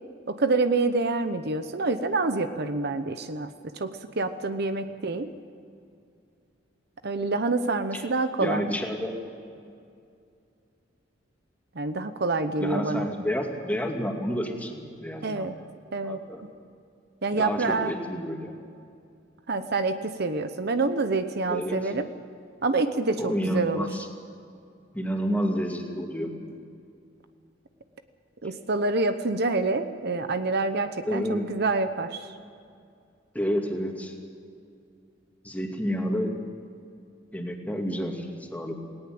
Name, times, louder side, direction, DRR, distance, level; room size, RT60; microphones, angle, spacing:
voice 1, 0.3-5.3 7.0-8.7 11.7-13.1 15.2-15.5 15.9-16.2 17.2-17.9 19.5-22.1 22.6-23.9 28.4-32.3, right 3 dB, 60° right, 9 dB, 1.0 m, -27 dB
voice 2, 8.4-9.2 12.6-15.5 16.0-16.4 17.3-18.5 21.5-21.8 23.2-24.1 24.9-26.3 31.1-31.5 33.3-34.1 35.4-36.3 37.3-38.8, equal, 10° left, 1 dB, 2.4 m, -29 dB
19.0 x 18.0 x 7.8 m, 2.4 s
head